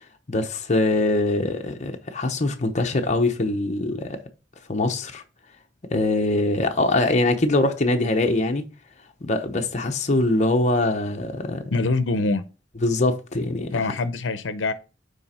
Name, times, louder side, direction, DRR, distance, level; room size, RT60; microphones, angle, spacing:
voice 1, 0.3-4.2 4.7-5.2 5.9-8.6 9.2-11.7 12.8-13.7, left 2 dB, 40° left, 0.8 m, -23 dB
voice 2, 11.7-12.4 13.7-14.7, left 3 dB, 80° left, 0.6 m, -24 dB
9.2 x 3.4 x 4.2 m
head